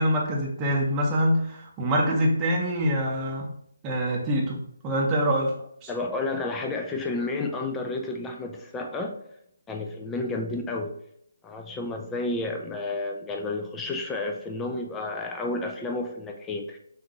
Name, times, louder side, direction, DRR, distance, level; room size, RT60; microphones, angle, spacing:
voice 1, 0.0-3.5 3.8-5.5 5.8-5.9, equal, 15° right, -2 dB, 0.8 m, -25 dB
voice 2, 5.9-9.1 9.7-10.9 11.4-16.8, left 2 dB, 10° left, 3 dB, 0.5 m, -31 dB
5.8 x 2.7 x 3.0 m, 0.70 s
figure-of-eight pair, 145°, 0 cm